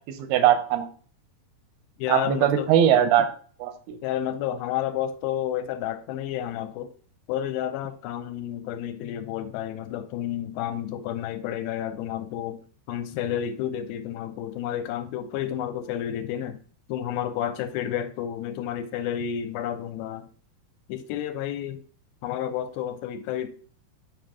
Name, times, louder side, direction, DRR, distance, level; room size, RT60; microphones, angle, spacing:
voice 1, 0.1-0.9 2.1-3.3 3.6-4.0, right 10 dB, 85° right, 2.7 m, -21 dB
voice 2, 2.0-2.7 4.0-6.9 7.3-12.6 12.9-16.6 16.9-20.2 20.9-21.8 22.2-23.5, left 10 dB, 80° left, 2.4 m, -30 dB
7.6 x 5.1 x 3.6 m
omnidirectional pair, 4.4 m